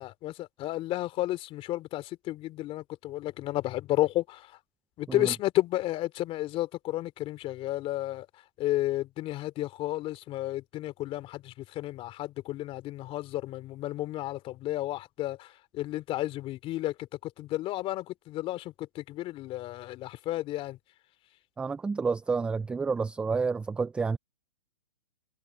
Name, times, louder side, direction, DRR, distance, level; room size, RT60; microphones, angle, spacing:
voice 1, 0.0-4.6 5.0-8.3 8.6-20.8, left 15 dB, 25° left, 3.1 m, -32 dB
voice 2, 21.6-24.2, right 4 dB, 5° right, 0.4 m, -29 dB
hypercardioid pair, 145°, 21 cm